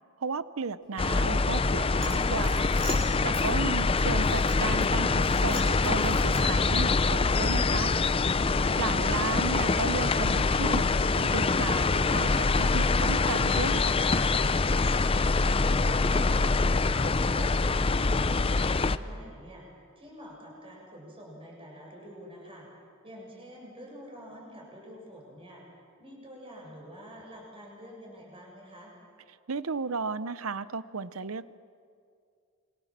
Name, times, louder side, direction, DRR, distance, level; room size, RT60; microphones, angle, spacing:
voice 1, 0.2-2.7 3.2-7.9 8.8-10.9 11.2-14.3 29.5-31.5, right 4 dB, 80° right, 15 dB, 0.8 m, -34 dB
sound 1, 1.0-19.0, left 3 dB, 25° left, 0.5 m, -25 dB
sound 2, 2.0-3.5 4.0-4.9 5.2-6.7, right 1 dB, ahead, 7.7 m, -43 dB
voice 2, 15.3-17.0 17.3-22.7 23.0-25.6 26.0-28.9, equal, 25° right, -2 dB, 7.1 m, -47 dB
27.0 x 23.5 x 7.5 m, 2.3 s
head